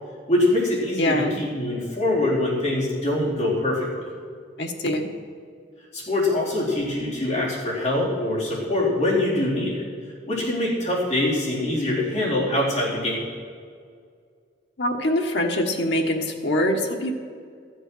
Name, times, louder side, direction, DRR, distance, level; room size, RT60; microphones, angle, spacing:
voice 1, 0.3-4.1 5.9-9.9 10.3-13.3, left 1 dB, 40° left, -6 dB, 4.0 m, -24 dB
voice 2, 1.0-1.4 4.6-5.1 14.8-17.1, left 1 dB, 65° left, 2 dB, 1.4 m, -24 dB
13.5 x 8.0 x 6.2 m, 2.1 s
head